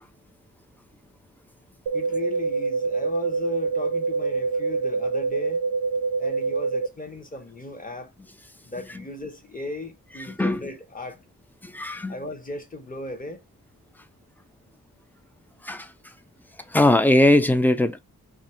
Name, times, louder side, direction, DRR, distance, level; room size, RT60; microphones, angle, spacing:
voice 1, 1.9-5.6 6.2-8.1 8.6-11.2 12.1-13.4, left 2 dB, 25° left, 0.8 m, -36 dB
sound 1, 1.9-6.9, right 4 dB, 90° right, 0.5 m, -26 dB
voice 2, 10.3-10.6 11.6-12.1 15.6-15.9 16.7-18.0, left 1 dB, 5° left, 0.3 m, -20 dB
2.8 x 2.5 x 4.2 m
wide cardioid pair, 105°, 36 cm